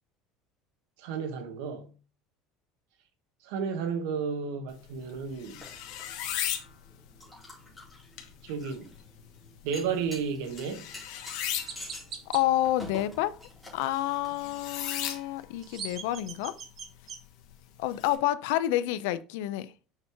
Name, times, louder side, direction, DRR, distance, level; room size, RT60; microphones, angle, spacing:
voice 1, 1.0-1.9 3.4-5.7 8.4-8.9 9.6-10.9, right 6 dB, 85° right, 1.2 m, -32 dB
sound 1, 4.7-18.1, left 10 dB, 65° left, 1.1 m, -40 dB
sound 2, 4.9-14.6, left 1 dB, ahead, 2.6 m, -49 dB
Chirp tweet, 10.8-10.9 11.7-12.4 15.4-17.2, right 6 dB, 35° right, 0.9 m, -41 dB
voice 2, 12.3-13.4 13.7-16.6 17.8-19.7, left 14 dB, 90° left, 0.5 m, -29 dB
6.5 x 4.6 x 3.5 m
cardioid pair, 175°, 0 cm